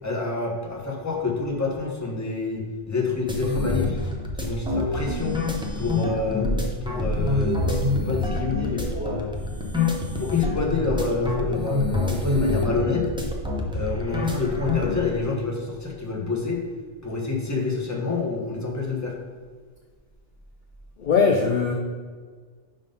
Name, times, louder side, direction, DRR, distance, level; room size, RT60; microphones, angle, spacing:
voice 1, 0.0-4.1 4.4-5.4 5.8-6.5 6.8-9.3 10.2-13.1 13.7-16.6 17.0-19.1, left 3 dB, 15° left, -1 dB, 0.8 m, -27 dB
sound 1, 3.3-15.0, left 2 dB, 5° right, 0.4 m, -26 dB
voice 2, 21.0-21.7, left 5 dB, 60° left, 1 dB, 0.5 m, -20 dB
5.4 x 3.7 x 5.3 m, 1.5 s
omnidirectional pair, 1.3 m